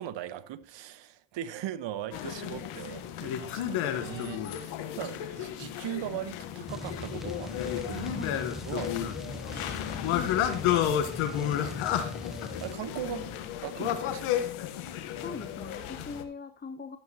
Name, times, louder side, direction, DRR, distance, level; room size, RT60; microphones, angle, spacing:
voice 1, 0.0-10.0 11.1-11.8 12.6-13.2 13.6-14.5, right 11 dB, 60° right, 1.0 m, -40 dB
sound 1, 2.1-16.2, left 10 dB, 80° left, 1.2 m, -32 dB
sound 2, 6.7-12.8, equal, ahead, 0.5 m, -42 dB
voice 2, 10.1-11.0 15.2-17.0, left 5 dB, 20° left, 0.9 m, -41 dB
12.0 x 7.9 x 2.8 m
supercardioid pair, 70°, 50 cm